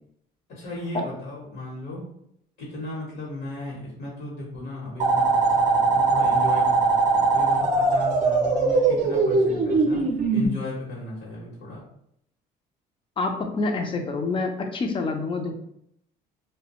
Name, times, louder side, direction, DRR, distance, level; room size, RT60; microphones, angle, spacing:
voice 1, 0.5-2.1 2.6-10.0 10.3-11.8, left 2 dB, 70° left, -5 dB, 1.0 m, -35 dB
sound 1, 5.0-10.5, right 3 dB, 45° right, 0.5 m, -21 dB
voice 2, 13.2-15.5, left 3 dB, 30° left, 5 dB, 0.4 m, -27 dB
2.3 x 2.1 x 2.9 m, 0.73 s
cardioid pair, 110°, 17 cm